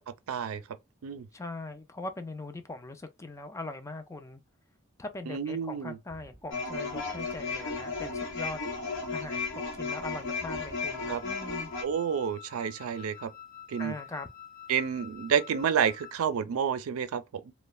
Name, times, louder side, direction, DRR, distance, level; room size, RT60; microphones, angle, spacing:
voice 1, 0.3-0.6 1.0-1.3 5.3-6.0 11.1-11.2 11.8-13.3 13.7-14.0 14.7-17.5, right 7 dB, 90° right, 0.4 m, -29 dB
voice 2, 1.3-4.4 5.0-8.6 9.1-11.7 13.8-14.3, left 2 dB, 15° left, 0.3 m, -41 dB
sound 1, 6.1-12.0, right 2 dB, 25° right, 1.1 m, -54 dB
sound 2, 6.5-11.8, left 4 dB, 60° left, 0.8 m, -34 dB
Wind instrument woodwind instrument, 10.9-16.3, left 10 dB, 40° left, 1.2 m, -49 dB
3.0 x 2.1 x 2.2 m
head